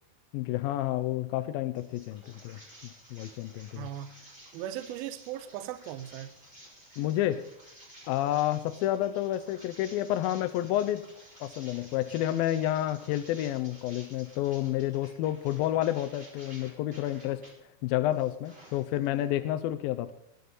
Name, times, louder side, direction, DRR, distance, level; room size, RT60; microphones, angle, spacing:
voice 1, 0.3-2.6 3.1-3.9 7.0-7.4 8.1-11.0 11.4-17.4 17.8-20.1, left 13 dB, 80° left, 2.2 m, -30 dB
sound 1, 1.7-17.5 17.9-19.2, right 1 dB, 15° right, 5.1 m, -53 dB
voice 2, 3.7-6.3, right 12 dB, 80° right, 2.5 m, -39 dB
21.0 x 9.5 x 4.0 m
omnidirectional pair, 4.5 m